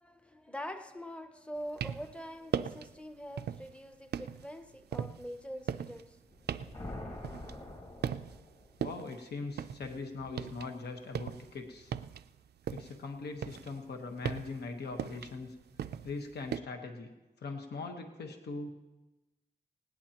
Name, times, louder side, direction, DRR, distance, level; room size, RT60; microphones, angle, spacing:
voice 1, 0.0-6.3, equal, 5° left, 0.7 m, -44 dB
sound 1, 1.6-2.2 2.5-2.9 3.4-3.7 4.1-7.8 8.0-8.5 8.8-10.7 11.0-13.0 13.4-16.6, right 8 dB, 80° right, 0.4 m, -38 dB
sound 2, 6.3-8.9, left 1 dB, 35° left, 2.0 m, -45 dB
voice 2, 8.8-11.9 12.7-15.5 16.0-17.1 17.4-18.7, left 3 dB, 85° left, 1.2 m, -41 dB
19.0 x 17.5 x 2.9 m
wide cardioid pair, 175°, 17 cm